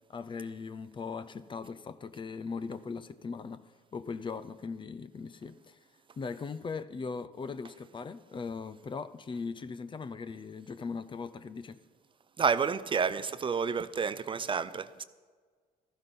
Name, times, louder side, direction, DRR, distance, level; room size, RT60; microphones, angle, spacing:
voice 1, 0.1-3.6 3.9-5.8 6.2-11.8, left 5 dB, 30° left, 0.6 m, -39 dB
voice 2, 12.4-14.9, right 6 dB, 30° right, 0.5 m, -29 dB
14.0 x 12.5 x 5.4 m
cardioid pair, 110°, 17 cm